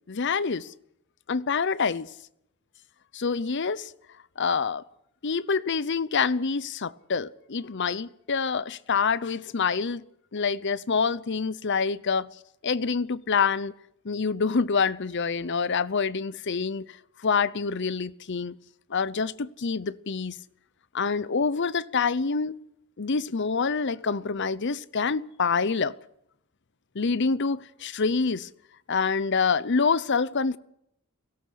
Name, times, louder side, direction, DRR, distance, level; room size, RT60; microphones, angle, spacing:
voice 1, 0.1-0.7 1.3-2.1 3.1-3.9 4.4-4.8 5.2-10.0 10.3-12.3 12.6-13.7 14.0-16.9 17.2-18.6 18.9-20.4 20.9-22.6 23.0-26.0 26.9-28.5 28.9-30.6, left 5 dB, 55° left, 0.7 m, -26 dB
24.0 x 17.5 x 6.5 m
head